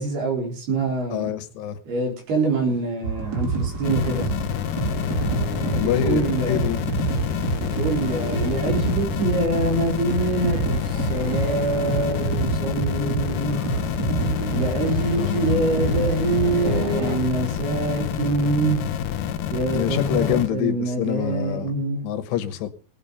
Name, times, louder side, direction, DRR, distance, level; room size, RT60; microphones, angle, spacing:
voice 1, 0.0-1.3 1.9-4.3 5.7-6.8 7.5-13.6 14.5-18.8 19.5-22.1, right 3 dB, 70° right, 2 dB, 6.0 m, -25 dB
voice 2, 1.1-1.8 5.6-6.8 15.1-15.6 19.7-21.8 22.0-22.7, left 12 dB, 85° left, 11 dB, 3.4 m, -26 dB
sound 1, 3.0-17.2, right 4 dB, 25° right, 2.8 m, -27 dB
sound 2, 3.8-20.5, left 10 dB, 70° left, 2.1 m, -28 dB
19.0 x 9.1 x 5.5 m, 0.40 s
omnidirectional pair, 4.8 m